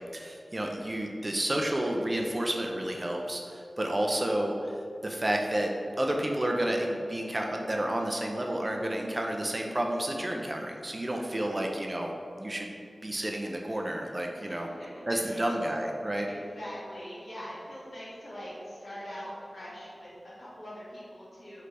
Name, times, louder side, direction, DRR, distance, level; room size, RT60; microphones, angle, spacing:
voice 1, 0.1-12.1 12.4-12.7 13.0-14.7 15.1-16.3, right 1 dB, 30° right, 1 dB, 0.4 m, -30 dB
voice 2, 11.1-11.6 14.4-15.5 16.2-21.6, equal, 70° left, -8 dB, 1.3 m, -43 dB
3.7 x 3.3 x 3.3 m, 2.5 s
wide cardioid pair, 90°, 0 cm